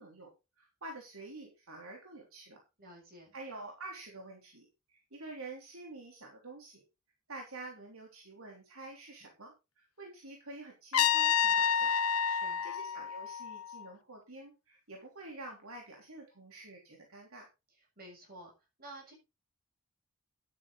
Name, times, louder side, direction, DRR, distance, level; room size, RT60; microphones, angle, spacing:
voice 1, 0.0-2.6 3.3-6.8 7.3-11.9 12.4-17.5, right 2 dB, 75° right, 0 dB, 3.3 m, -48 dB
voice 2, 2.8-3.4 12.2-12.7 18.0-18.5 18.8-19.1, right 1 dB, 45° right, 1 dB, 7.3 m, -51 dB
Trumpet, 10.9-13.9, left 8 dB, 85° left, 0.8 m, -29 dB
11.5 x 9.7 x 4.0 m, 0.27 s
head